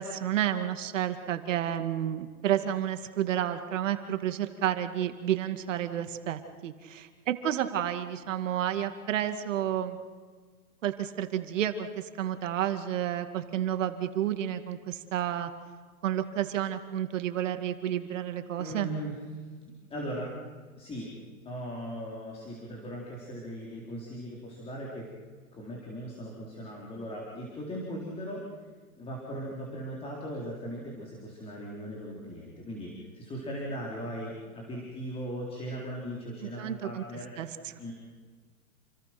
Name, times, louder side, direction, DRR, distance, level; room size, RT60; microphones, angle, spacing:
voice 1, 0.0-10.0 10.8-15.5 16.0-18.9 36.6-37.0 37.4-37.9, right 11 dB, 55° right, 8 dB, 2.3 m, -31 dB
voice 2, 18.6-19.1 19.9-20.3 20.8-21.1 21.5-25.1 25.5-28.4 29.0-37.3 37.8-37.9, equal, 15° left, -3 dB, 4.1 m, -38 dB
29.0 x 21.5 x 6.0 m, 1.5 s
hypercardioid pair, 145°, 44 cm